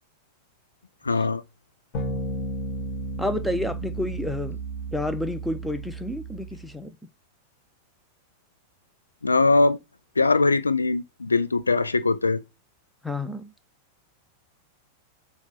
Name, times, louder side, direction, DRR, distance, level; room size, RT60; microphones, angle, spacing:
voice 1, 1.0-1.4 9.2-9.8 10.2-12.4, left 3 dB, 80° left, 0.4 m, -21 dB
sound 1, 1.9-6.7, right 2 dB, 40° left, 2.1 m, -33 dB
voice 2, 3.2-4.6 4.9-7.0 13.0-13.5, left 1 dB, 5° left, 0.7 m, -30 dB
7.1 x 2.4 x 5.5 m
figure-of-eight pair, 90°, 0 cm